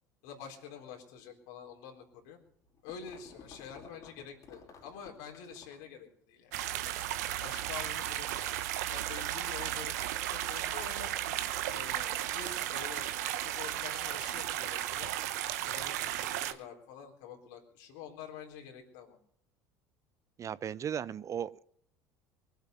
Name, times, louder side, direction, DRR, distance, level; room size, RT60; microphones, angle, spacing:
voice 1, 0.2-2.4 2.8-6.9 7.4-8.6 8.9-11.1 11.7-15.1 15.6-19.2, left 7 dB, 70° left, 3.9 m, -47 dB
sound 1, 2.5-6.0, left 5 dB, 40° left, 3.5 m, -55 dB
sound 2, 6.5-16.5, right 13 dB, 75° right, 1.0 m, -35 dB
voice 2, 20.4-21.6, right 8 dB, 35° right, 0.6 m, -36 dB
23.5 x 8.2 x 6.5 m
hypercardioid pair, 70°, 9 cm